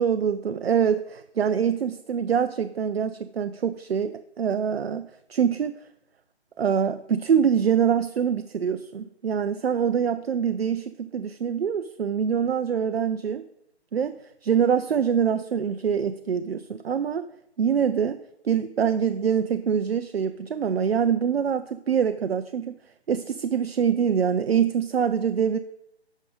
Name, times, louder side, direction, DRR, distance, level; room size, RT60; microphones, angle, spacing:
voice 1, 0.0-5.8 6.6-13.4 13.9-14.1 14.4-17.2 17.6-18.2 18.4-22.8 23.1-25.6, right 7 dB, 65° right, 11 dB, 0.5 m, -24 dB
10.5 x 6.3 x 3.8 m, 0.77 s
figure-of-eight pair, 155°, 33 cm